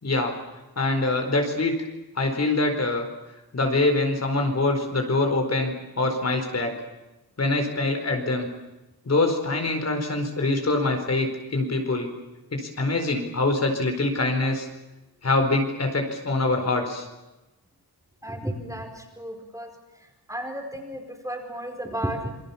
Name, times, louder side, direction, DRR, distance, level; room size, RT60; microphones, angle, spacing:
voice 1, 0.0-0.3 0.8-1.7 2.2-3.1 3.5-6.7 7.4-8.5 9.0-12.1 12.5-14.7 15.2-17.1, left 2 dB, 40° left, 4 dB, 4.6 m, -24 dB
voice 2, 18.2-18.9 19.2-19.7 20.3-22.3, right 1 dB, 10° right, 3 dB, 4.8 m, -33 dB
27.5 x 24.5 x 7.2 m, 1.0 s
wide cardioid pair, 170°, 38 cm